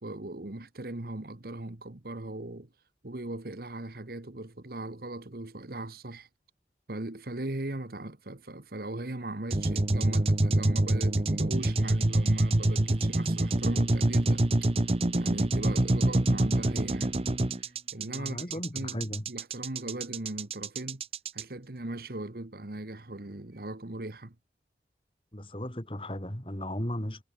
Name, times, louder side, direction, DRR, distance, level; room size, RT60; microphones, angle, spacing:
voice 1, 0.0-2.7 3.0-6.3 6.9-14.7 15.2-17.3 17.6-18.4 18.7-21.0 21.3-24.3, right 2 dB, 55° right, 1.4 m, -39 dB
sound 1, 9.5-21.4, right 1 dB, 35° right, 1.0 m, -26 dB
voice 2, 18.1-19.2 25.3-27.2, left 1 dB, 30° left, 3.3 m, -36 dB
head